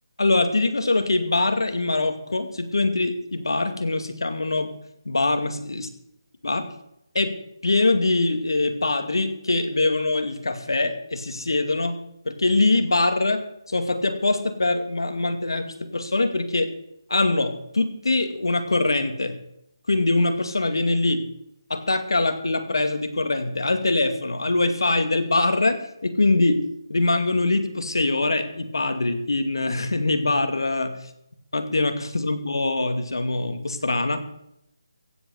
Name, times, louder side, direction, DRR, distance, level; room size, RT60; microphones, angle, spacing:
voice 1, 0.2-4.7 5.1-5.9 6.4-6.7 7.1-7.3 7.6-12.0 12.3-13.4 13.7-16.7 17.1-19.4 19.9-21.3 21.7-26.6 26.9-31.0 31.5-34.2, left 2 dB, 80° left, 8 dB, 2.3 m, -23 dB
15.5 x 7.9 x 8.0 m, 0.78 s
figure-of-eight pair, 165°, 2 cm